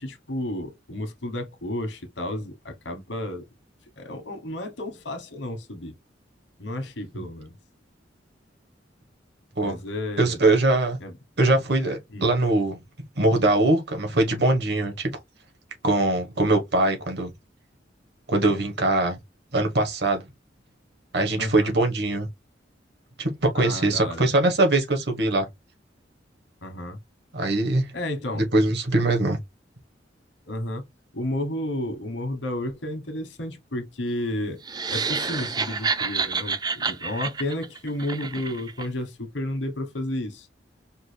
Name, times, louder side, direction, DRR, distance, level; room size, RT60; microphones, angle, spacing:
voice 1, 0.0-3.4 4.0-5.9 6.6-7.5 9.6-10.4 11.0-11.2 12.1-12.3 21.4-21.7 23.5-24.3 26.6-27.0 27.9-28.5 30.5-30.8 31.1-34.6 34.9-40.5, left 1 dB, 80° left, 1.2 m, -32 dB
voice 2, 10.2-11.0 11.4-12.8 13.2-15.1 15.8-17.3 18.3-19.2 19.5-20.2 21.1-22.3 23.2-25.5 27.3-27.9 28.3-29.4, right 2 dB, 65° right, 1.3 m, -22 dB
sound 1, 34.6-38.9, right 5 dB, 20° right, 0.3 m, -28 dB
5.2 x 2.3 x 3.3 m
head